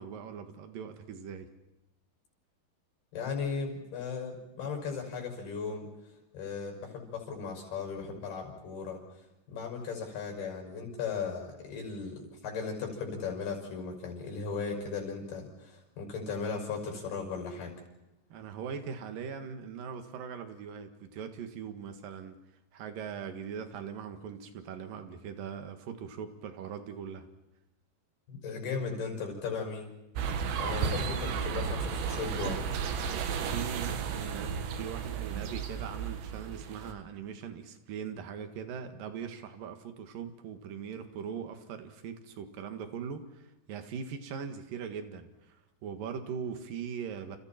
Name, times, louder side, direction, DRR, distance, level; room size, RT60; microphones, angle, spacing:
voice 1, 0.0-1.5 18.3-22.4 22.7-27.3 30.9-31.0 33.0-45.6 45.8-47.4, right 7 dB, 60° right, 7 dB, 3.3 m, -41 dB
voice 2, 3.1-5.9 6.3-9.0 9.5-17.7 28.3-29.9 30.6-32.6, left 5 dB, 60° left, 2 dB, 8.2 m, -37 dB
sound 1, 30.1-36.9, right 6 dB, 85° right, 4.1 m, -33 dB
30.0 x 29.5 x 4.4 m, 0.96 s
omnidirectional pair, 5.0 m